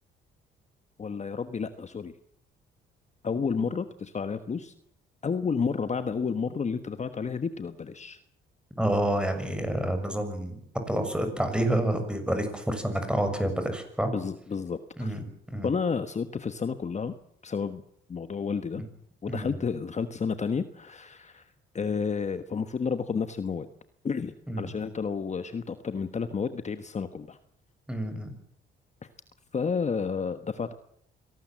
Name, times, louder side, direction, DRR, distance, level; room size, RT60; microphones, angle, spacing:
voice 1, 1.0-2.1 3.2-4.7 5.2-8.2 14.1-15.2 15.6-17.1 17.4-17.8 18.1-18.8 19.2-23.7 24.0-27.4 29.5-30.7, left 5 dB, 35° left, 10 dB, 1.3 m, -31 dB
voice 2, 8.8-10.6 10.9-14.1 15.0-15.7 19.3-19.5 24.5-24.7 27.9-28.3, right 1 dB, 5° right, 7 dB, 6.6 m, -28 dB
25.0 x 18.5 x 7.6 m, 0.69 s
cardioid pair, 90°, 20 cm